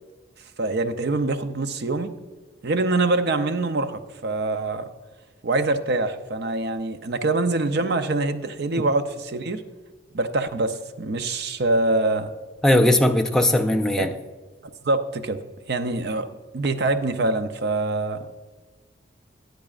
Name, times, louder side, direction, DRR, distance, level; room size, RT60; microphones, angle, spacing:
voice 1, 0.6-2.1 2.6-4.9 5.4-9.6 10.1-12.3 14.0-14.1 14.8-15.4 15.7-16.3 16.5-18.3, right 2 dB, 55° right, 0.6 m, -24 dB
voice 2, 12.6-14.1, left 1 dB, 5° left, 0.4 m, -19 dB
13.5 x 9.3 x 2.4 m
head